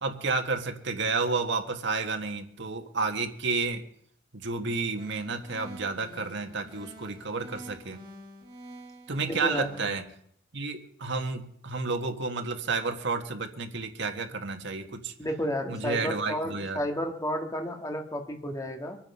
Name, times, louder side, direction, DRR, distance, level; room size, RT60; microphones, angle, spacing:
voice 1, 0.0-3.8 4.3-8.0 9.1-10.1 10.5-15.1 15.7-16.8, right 4 dB, 65° right, 5 dB, 1.7 m, -31 dB
sound 1, 5.0-10.0, right 1 dB, 25° right, 4.3 m, -48 dB
voice 2, 9.2-9.7 15.2-19.0, equal, 20° left, 3 dB, 1.9 m, -32 dB
24.0 x 9.5 x 5.6 m, 0.67 s
head